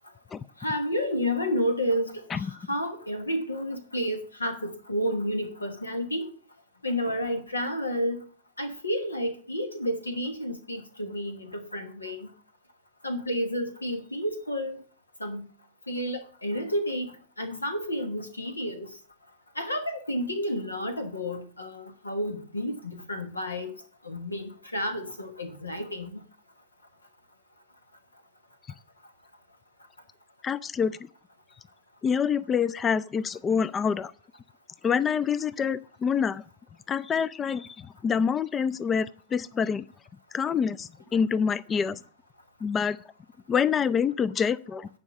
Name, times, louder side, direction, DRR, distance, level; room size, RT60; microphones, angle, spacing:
voice 1, 0.6-6.3 6.8-8.2 8.6-12.3 13.0-14.8 15.2-15.5 15.9-17.1 17.4-18.9 19.6-23.7 24.0-26.2, equal, 80° left, 9 dB, 1.2 m, -31 dB
voice 2, 30.4-31.0 32.0-34.1 34.8-36.4 36.9-39.8 40.3-42.0 42.6-43.0 43.5-44.9, left 6 dB, 20° left, 20 dB, 0.4 m, -26 dB
10.5 x 5.4 x 8.0 m, 0.43 s
figure-of-eight pair, 90°, 0 cm